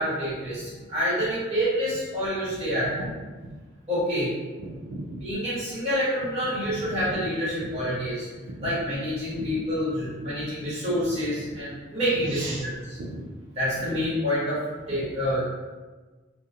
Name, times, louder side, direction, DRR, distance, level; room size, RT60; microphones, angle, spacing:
voice 1, 0.0-3.1 3.9-4.3 5.2-8.3 8.6-12.7 13.6-14.6 14.9-15.4, equal, 35° right, -10 dB, 1.1 m, -27 dB
voice 2, 2.5-3.1 3.4-3.5 4.6-5.7 6.7-7.2 7.6-7.7 8.0-8.1 8.4-8.8 9.3-9.6 10.0-10.8 11.0-11.6 12.0-13.2 13.8-14.0 14.9-15.3, right 1 dB, 75° right, -4 dB, 0.4 m, -39 dB
2.4 x 2.0 x 2.7 m, 1.3 s
head